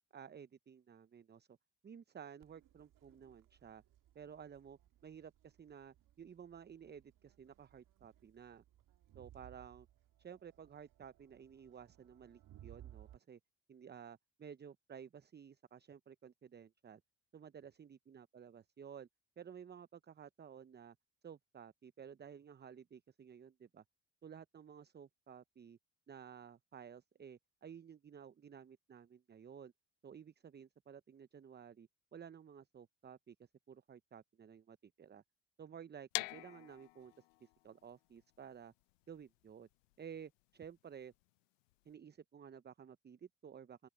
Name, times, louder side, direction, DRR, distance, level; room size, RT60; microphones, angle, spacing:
voice 1, 0.1-1.6 1.8-3.8 4.1-8.6 9.1-9.9 10.2-13.4 13.7-17.0 17.3-19.1 19.4-21.0 21.2-23.8 24.2-25.8 26.1-29.7 30.0-35.2 35.6-38.7 39.1-39.7 40.0-41.1 41.8-43.9, right 7 dB, 30° right, 0.8 m, -54 dB
Crowd, 2.4-13.2, right 12 dB, 60° right, 1.7 m, -62 dB
sound 1, 36.1-41.9, left 26 dB, 80° left, 0.7 m, -47 dB
open air
hypercardioid pair, 60°, 37 cm